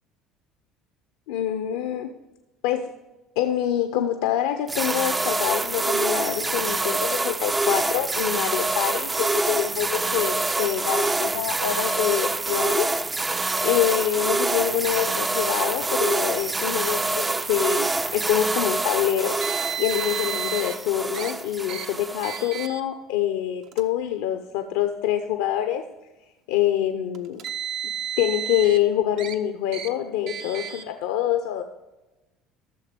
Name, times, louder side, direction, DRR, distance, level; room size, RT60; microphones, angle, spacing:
voice 1, 1.3-2.1 2.6-2.9 3.4-12.9 13.6-25.8 26.5-27.4 28.2-31.6, left 11 dB, 85° left, 7 dB, 0.7 m, -25 dB
sound 1, 4.7-22.7, right 3 dB, 20° right, 0.4 m, -26 dB
Car, 19.4-20.7 21.1-21.3 21.7-21.9 22.2-22.8 23.6-23.8 24.8-24.9 27.1-28.8 29.2-29.4 29.7-29.9 30.3-30.8, right 10 dB, 70° right, 0.9 m, -32 dB
13.5 x 6.6 x 5.2 m, 1.1 s
supercardioid pair, 85°, 0 cm